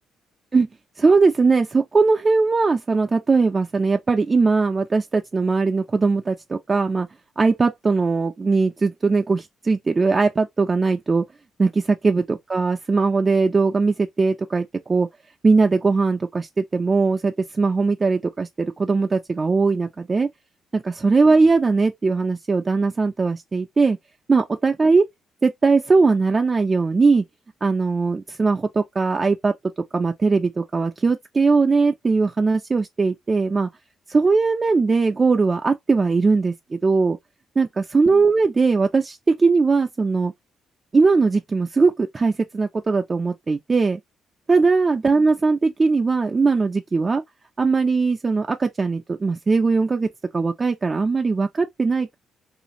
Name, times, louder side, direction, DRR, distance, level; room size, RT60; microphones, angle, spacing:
voice 1, 1.0-7.1 7.4-11.2 11.6-15.1 15.4-20.3 20.7-24.0 24.3-25.0 25.4-27.2 27.6-29.5 29.9-33.7 34.1-37.2 37.6-40.3 40.9-44.0 44.5-47.2 47.6-50.1 50.3-52.2, right 4 dB, 30° right, 0.3 m, -20 dB
2.4 x 2.4 x 2.8 m
cardioid pair, 90°, 0 cm